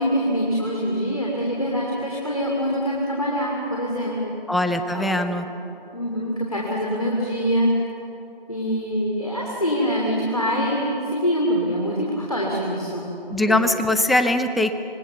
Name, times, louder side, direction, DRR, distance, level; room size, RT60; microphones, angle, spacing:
voice 1, 0.0-4.3 4.9-5.3 5.9-7.7 8.5-13.1 13.5-13.6, equal, 40° left, -3 dB, 2.8 m, -24 dB
voice 2, 4.5-5.5 13.3-14.7, left 1 dB, ahead, 8 dB, 0.5 m, -21 dB
26.0 x 20.0 x 6.9 m, 3.0 s
figure-of-eight pair, 180°, 29 cm